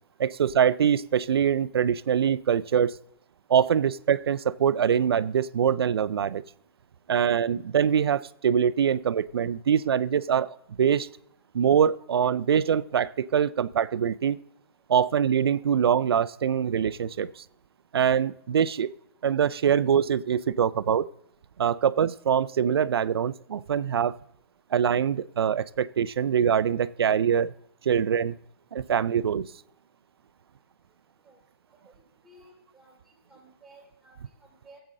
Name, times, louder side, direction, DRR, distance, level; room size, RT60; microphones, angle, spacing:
voice 1, 0.2-3.0 3.5-6.4 7.1-11.1 11.5-14.4 14.9-17.4 17.9-18.9 19.2-21.1 21.6-24.1 24.7-27.5 27.8-28.3 28.7-29.5, right 8 dB, 85° right, 17 dB, 0.4 m, -24 dB
voice 2, 32.2-32.9 33.3-34.8, right 2 dB, ahead, -1 dB, 3.2 m, -55 dB
15.0 x 7.8 x 3.7 m, 0.72 s
hypercardioid pair, 155°, 13 cm